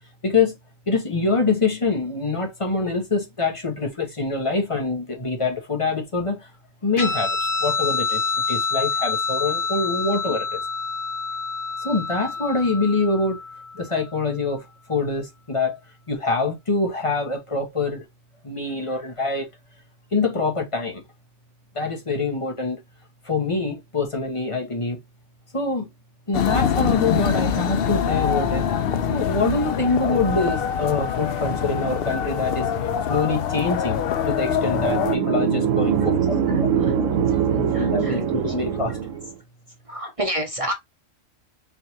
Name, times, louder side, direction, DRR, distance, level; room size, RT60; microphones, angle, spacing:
voice 1, 0.2-0.6 0.9-6.5 6.8-8.2 8.5-10.6 11.8-13.4 13.7-15.8 16.1-18.0 18.4-19.5 20.1-21.0 21.7-22.8 23.2-25.0 25.5-25.9 26.3-28.6 29.1-32.7 33.1-36.9 37.5-39.0, left 3 dB, 25° left, 1.0 m, -25 dB
Guitar, 7.0-13.9, left 4 dB, 40° left, 1.2 m, -27 dB
sound 1, 26.3-35.2, left 8 dB, 65° left, 0.6 m, -24 dB
sound 2, 34.4-39.3, right 7 dB, 80° right, 1.1 m, -23 dB
voice 2, 36.5-36.9 37.3-37.4 37.7-38.2 39.9-40.7, equal, 35° right, 0.7 m, -30 dB
4.3 x 3.3 x 2.7 m
omnidirectional pair, 1.3 m